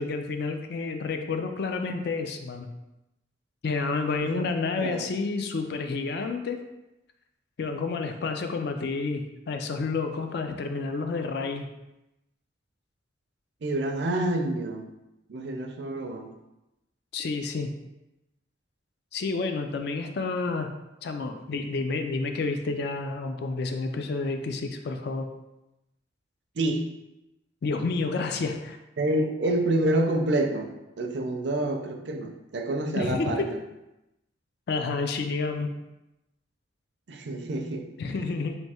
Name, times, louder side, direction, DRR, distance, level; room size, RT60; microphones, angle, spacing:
voice 1, 0.0-2.7 3.6-6.6 7.6-11.7 17.1-17.7 19.1-20.7 21.0-25.3 27.6-28.8 32.9-33.6 34.7-35.7 38.0-38.6, left 4 dB, 60° left, 6 dB, 0.4 m, -30 dB
voice 2, 13.6-14.9 15.3-16.3 26.6-26.8 29.0-30.7 31.0-33.4 37.1-37.9, right 1 dB, 65° right, 4 dB, 0.5 m, -27 dB
3.4 x 2.7 x 4.2 m, 0.94 s
head